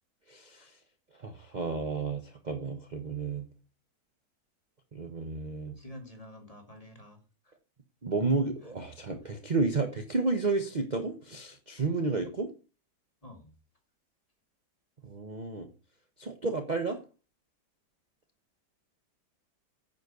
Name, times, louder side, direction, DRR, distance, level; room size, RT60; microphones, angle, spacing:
voice 1, 0.3-0.8 1.2-3.5 4.9-5.7 8.0-12.5 15.0-15.7 16.2-17.0, right 3 dB, 30° right, 7 dB, 1.0 m, -31 dB
voice 2, 5.8-7.6 8.6-8.7 13.2-13.5, left 1 dB, 20° left, 3 dB, 2.3 m, -49 dB
9.9 x 5.5 x 6.8 m, 0.33 s
omnidirectional pair, 1.8 m